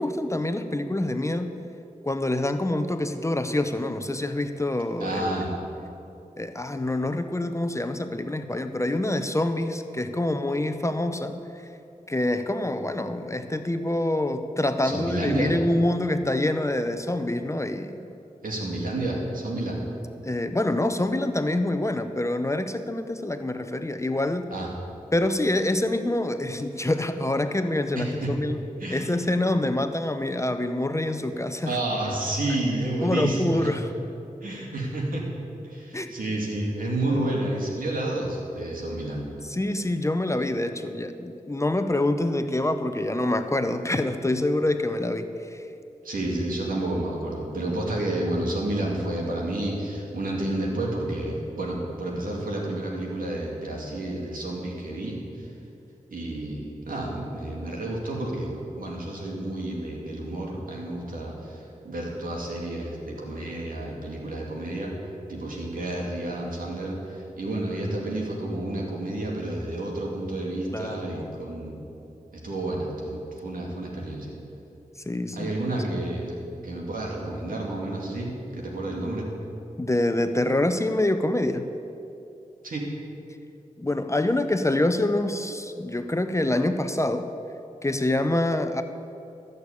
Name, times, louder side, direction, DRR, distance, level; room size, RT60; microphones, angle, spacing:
voice 1, 0.0-1.5 2.0-5.5 6.4-11.6 12.1-18.0 20.2-24.5 25.1-28.6 28.9-31.8 33.0-33.9 35.9-36.1 37.1-37.3 39.4-45.6 70.7-71.3 75.0-75.5 79.8-81.7 83.8-87.3 87.8-88.8, left 1 dB, 20° left, 8 dB, 0.8 m, -26 dB
voice 2, 5.0-5.5 14.8-15.5 18.4-19.8 24.5-24.7 27.9-28.3 28.8-29.1 31.7-33.7 34.4-35.3 35.6-39.3 46.0-55.5 56.1-64.9 65.3-71.8 72.3-74.3 75.4-76.3 76.6-79.2 82.6-82.9, right 1 dB, 80° right, -2 dB, 2.6 m, -30 dB
13.5 x 6.6 x 8.5 m, 2.8 s
cardioid pair, 45°, 14 cm